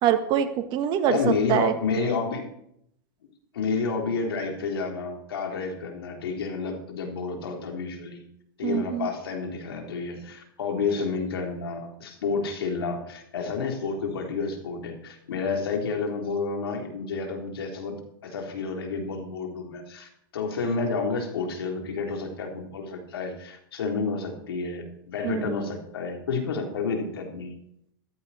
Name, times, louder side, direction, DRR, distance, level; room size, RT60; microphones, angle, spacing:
voice 1, 0.0-1.2 1.5-1.7 8.6-9.1 25.2-25.5, right 10 dB, 40° right, 8 dB, 1.6 m, -24 dB
voice 2, 1.1-2.5 3.5-8.2 8.6-18.0 18.2-27.6, left 4 dB, 80° left, 3 dB, 3.7 m, -30 dB
14.5 x 13.5 x 4.3 m, 0.76 s
hypercardioid pair, 130°, 12 cm